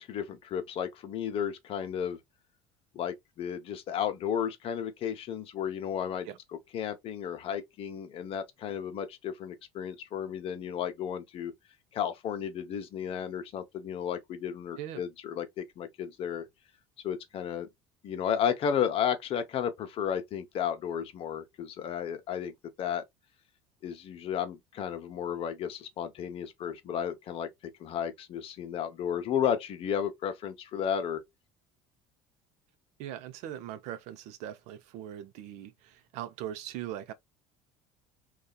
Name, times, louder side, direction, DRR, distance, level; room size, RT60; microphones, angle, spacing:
voice 1, 0.0-2.2 2.9-6.3 6.7-11.5 11.9-16.5 17.0-17.7 18.0-23.0 23.8-31.2, left 8 dB, 50° left, 0.7 m, -33 dB
voice 2, 33.0-37.1, right 11 dB, 70° right, 0.5 m, -40 dB
2.7 x 2.3 x 2.2 m
supercardioid pair, 105°, 12 cm